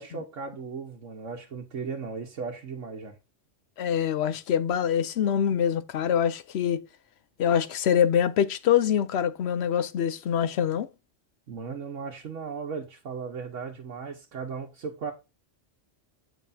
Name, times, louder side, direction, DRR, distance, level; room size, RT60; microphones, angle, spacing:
voice 1, 0.0-3.2 11.5-15.1, right 5 dB, 80° right, 1.4 m, -36 dB
voice 2, 3.8-6.9 7.4-10.9, left 9 dB, 65° left, 0.9 m, -24 dB
8.4 x 7.5 x 2.7 m
omnidirectional pair, 1.2 m